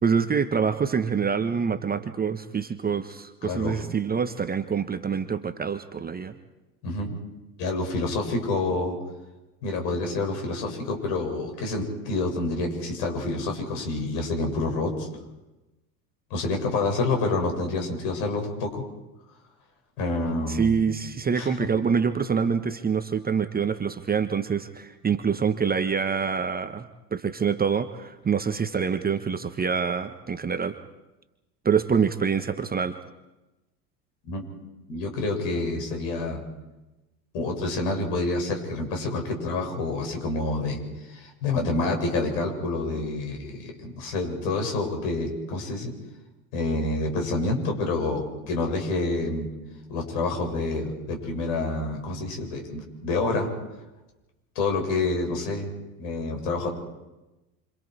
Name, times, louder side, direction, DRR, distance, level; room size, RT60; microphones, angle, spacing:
voice 1, 0.0-6.4 20.5-30.8 31.6-33.0, right 6 dB, 20° right, 9 dB, 1.2 m, -26 dB
voice 2, 3.4-3.8 6.8-7.1 7.6-9.0 9.6-15.1 16.3-18.8 20.0-20.8 21.3-21.6 34.2-34.4 34.9-36.4 37.3-45.9 46.5-49.5 49.9-53.5 54.6-55.7 56.0-56.7, left 2 dB, 55° left, 3 dB, 6.9 m, -28 dB
28.0 x 26.5 x 4.8 m, 1.1 s
figure-of-eight pair, 75°, 49 cm